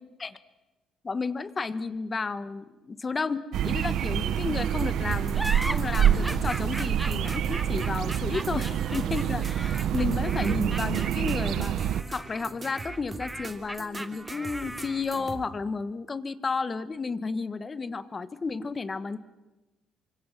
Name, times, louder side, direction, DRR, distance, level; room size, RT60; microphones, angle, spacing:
voice 1, 1.0-11.7 12.1-19.2, left 4 dB, 30° left, 13 dB, 1.3 m, -32 dB
sound 1, 3.5-12.0, right 10 dB, 70° right, 0.9 m, -27 dB
sound 2, 4.8-15.4, right 3 dB, 25° right, 2.9 m, -42 dB
sound 3, 5.3-15.2, right 1 dB, 5° right, 0.8 m, -38 dB
28.5 x 25.0 x 6.2 m, 1.1 s
cardioid pair, 100°, 0 cm